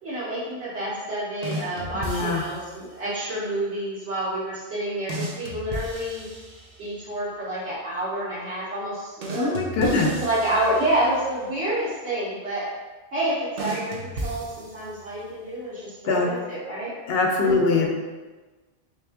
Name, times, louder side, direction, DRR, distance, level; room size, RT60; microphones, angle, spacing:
voice 1, 0.0-6.3 6.8-12.7 13.1-16.9 17.4-17.8, right 1 dB, 90° right, -9 dB, 1.4 m, -28 dB
sound 1, 1.4-2.8 5.1-7.1 9.2-11.4 13.6-15.2, right 1 dB, 45° right, 0.6 m, -35 dB
voice 2, 2.0-2.4 9.3-10.1 16.0-16.3 17.1-17.9, left 3 dB, 70° left, 1 dB, 0.8 m, -22 dB
3.4 x 3.0 x 3.4 m, 1.3 s
omnidirectional pair, 1.1 m